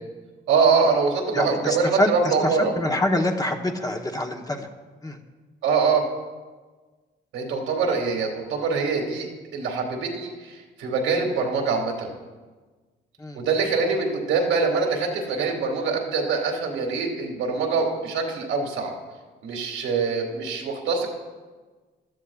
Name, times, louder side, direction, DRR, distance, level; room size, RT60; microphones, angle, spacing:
voice 1, 0.5-2.7 5.6-6.0 7.3-9.3 9.5-12.1 13.3-18.9 19.4-21.1, right 4 dB, 90° right, 1 dB, 2.3 m, -24 dB
voice 2, 1.3-4.7 5.0-5.2 13.2-13.4, left 1 dB, 20° left, 4 dB, 1.1 m, -25 dB
15.5 x 13.0 x 2.4 m, 1.3 s
cardioid pair, 90°, 20 cm